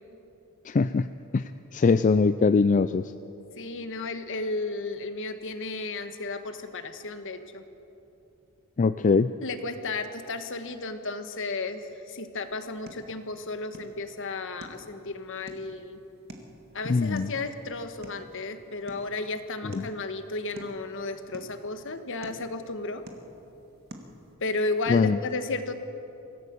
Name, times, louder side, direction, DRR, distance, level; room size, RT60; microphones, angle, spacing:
voice 1, 0.6-1.1 1.3-1.4 1.7-3.1 8.8-9.3 16.9-17.3 19.6-19.9 24.9-25.2, left 4 dB, 35° left, 11 dB, 0.4 m, -22 dB
voice 2, 3.6-7.6 9.4-16.0 16.7-23.0 24.4-25.7, left 3 dB, 60° left, 8 dB, 1.3 m, -33 dB
sound 1, 12.4-24.4, right 1 dB, 45° right, 1.9 m, -50 dB
24.5 x 16.5 x 6.9 m, 3.0 s
head